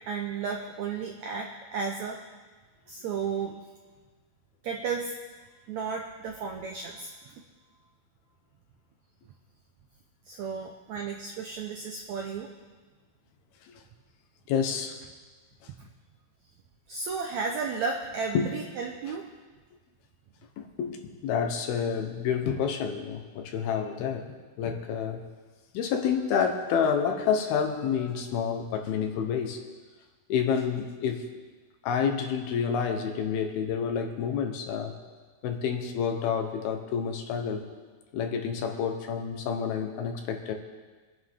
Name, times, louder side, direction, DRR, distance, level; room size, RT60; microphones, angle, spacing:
voice 1, 0.0-2.2 2.9-3.6 4.6-5.1 5.7-7.3 10.3-12.5 15.8-15.9 16.9-19.3, right 5 dB, 85° right, 2 dB, 1.6 m, -33 dB
voice 2, 14.5-15.0 18.3-18.5 20.6-25.2 25.7-29.6 30.3-31.3 31.8-34.9 35.4-37.6 38.1-40.5, left 7 dB, 80° left, 4 dB, 3.0 m, -29 dB
24.0 x 9.5 x 3.7 m, 1.4 s
omnidirectional pair, 4.4 m